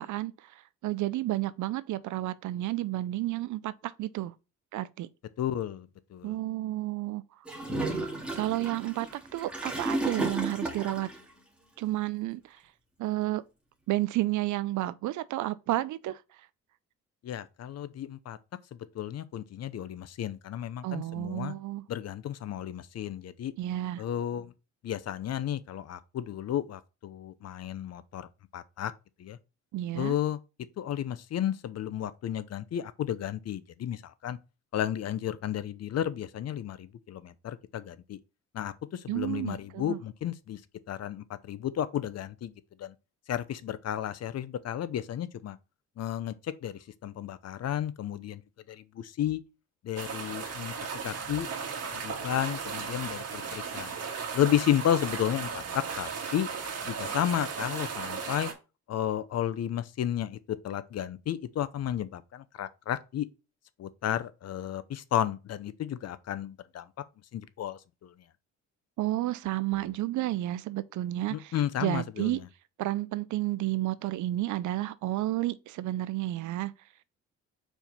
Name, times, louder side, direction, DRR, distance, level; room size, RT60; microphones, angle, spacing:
voice 1, 0.0-4.3 4.7-5.1 6.2-7.2 8.4-11.1 11.8-12.6 13.0-13.4 13.9-16.2 20.8-21.8 23.6-24.0 29.7-30.2 39.1-40.0 69.0-72.4 72.8-76.7, right 15 dB, 75° right, 0.6 m, -31 dB
voice 2, 5.4-6.3 17.2-18.4 18.7-21.5 21.9-23.5 24.0-24.5 24.8-28.9 29.2-29.4 29.9-30.4 30.8-34.4 34.7-38.2 38.5-40.6 40.9-42.5 42.8-42.9 43.3-45.6 46.0-48.4 48.7-49.4 49.8-50.7 51.0-51.5 51.9-53.9 54.3-56.5 56.9-58.5 58.9-63.3 63.8-66.8 67.3-68.1 71.3-72.4, left 11 dB, 55° left, 0.7 m, -32 dB
Gurgling / Toilet flush, 7.5-11.2, right 2 dB, 5° right, 1.9 m, -33 dB
sound 1, 50.0-58.5, right 5 dB, 55° right, 1.8 m, -36 dB
4.6 x 4.4 x 5.3 m
cardioid pair, 90°, 30 cm